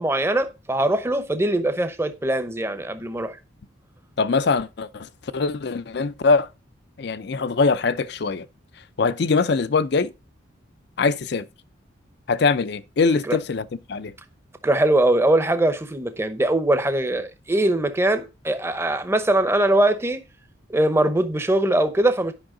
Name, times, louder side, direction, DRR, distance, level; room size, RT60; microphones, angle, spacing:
voice 1, 0.0-3.4 13.2-13.4 14.6-20.2 20.7-22.3, right 1 dB, 10° right, 0.7 m, -21 dB
voice 2, 4.2-6.5 7.0-8.5 9.0-10.1 11.0-11.5 12.3-14.1, left 4 dB, 55° left, 0.5 m, -22 dB
8.9 x 5.6 x 3.8 m
head